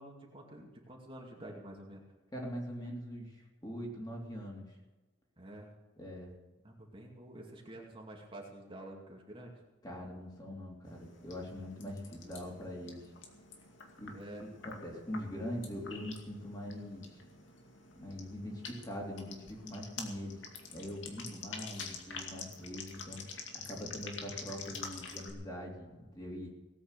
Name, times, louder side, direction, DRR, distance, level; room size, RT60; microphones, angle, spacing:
voice 1, 0.0-2.0 5.4-5.7 6.6-9.6 14.1-14.5 21.3-21.5, right 1 dB, 30° right, -1 dB, 2.4 m, -49 dB
voice 2, 2.3-4.8 6.0-6.3 9.8-13.1 14.0-14.1 14.4-17.2 17.9-20.4 20.7-23.2 23.5-26.5, equal, 20° left, -2 dB, 3.3 m, -42 dB
sound 1, 10.8-25.3, left 5 dB, 85° left, 2.3 m, -48 dB
18.0 x 8.7 x 6.8 m, 1.2 s
head